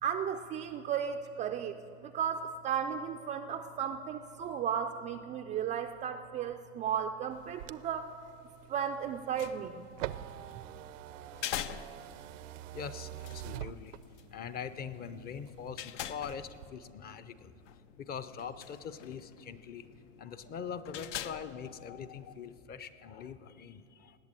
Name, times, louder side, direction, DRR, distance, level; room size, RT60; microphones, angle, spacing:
voice 1, 0.0-8.1 8.7-9.8, right 8 dB, 20° right, 5 dB, 0.3 m, -35 dB
sound 1, 7.3-14.4 14.8-15.8 16.2-16.7, right 14 dB, 85° right, 0.6 m, -44 dB
sound 2, 9.1-22.6, left 11 dB, 75° left, 0.8 m, -46 dB
voice 2, 12.7-14.0 14.3-17.5 18.0-19.8 20.2-24.2, left 7 dB, 25° left, 12 dB, 0.6 m, -42 dB
18.5 x 8.0 x 9.0 m, 2.6 s
supercardioid pair, 130°, 37 cm